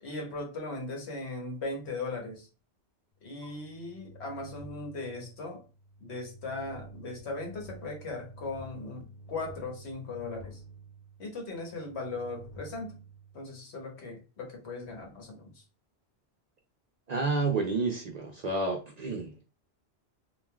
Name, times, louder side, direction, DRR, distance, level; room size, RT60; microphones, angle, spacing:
voice 1, 0.0-2.5 3.2-5.7 6.0-10.6 11.2-13.0 13.3-15.6, left 3 dB, 75° left, 1.2 m, -38 dB
sound 1, 3.3-13.9, right 2 dB, 60° left, 0.6 m, -50 dB
voice 2, 17.1-19.5, right 3 dB, 55° right, 0.5 m, -30 dB
3.2 x 2.4 x 2.2 m
omnidirectional pair, 1.1 m